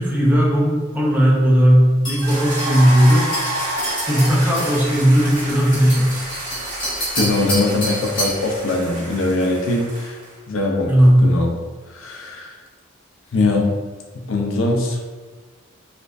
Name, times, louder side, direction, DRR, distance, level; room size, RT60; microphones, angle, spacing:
voice 1, 0.0-3.3 4.0-6.2 10.8-11.2, equal, 10° right, -5 dB, 0.6 m, -16 dB
sound 1, 2.1-8.5, equal, 25° left, 1.4 m, -29 dB
sound 2, 2.2-10.3, right 1 dB, 40° right, 1.0 m, -30 dB
voice 2, 7.1-10.2 10.5-11.0 11.2-11.6 11.9-12.5 13.3-13.8 14.3-15.0, left 2 dB, 75° left, 1 dB, 0.5 m, -21 dB
4.2 x 2.4 x 2.5 m, 1.4 s
head